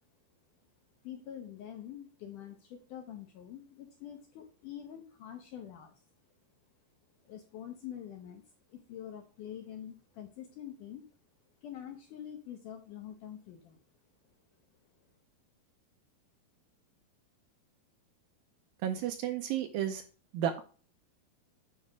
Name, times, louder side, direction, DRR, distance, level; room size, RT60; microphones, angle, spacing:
voice 1, 1.0-6.1 7.2-8.4 8.7-11.0 11.6-13.8, left 10 dB, 75° left, 4 dB, 1.9 m, -45 dB
voice 2, 18.8-20.0 20.3-20.6, right 10 dB, 80° right, 7 dB, 2.1 m, -32 dB
9.6 x 3.5 x 6.2 m, 0.38 s
omnidirectional pair, 4.6 m